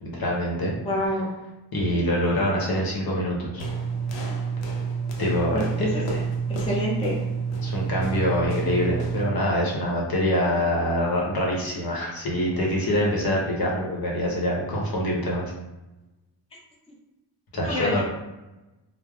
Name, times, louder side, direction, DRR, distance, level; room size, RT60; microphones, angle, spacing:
voice 1, 0.0-0.7 1.7-3.6 5.2-6.2 7.6-15.5 17.5-18.0, equal, 55° left, -3 dB, 0.9 m, -25 dB
voice 2, 0.8-1.3 5.5-5.9 6.6-7.2 17.6-18.0, left 1 dB, 15° left, -4 dB, 0.6 m, -27 dB
sound 1, 3.6-9.4, right 5 dB, 85° left, 0.6 m, -28 dB
3.3 x 2.0 x 2.3 m, 1.0 s
cardioid pair, 75°, 44 cm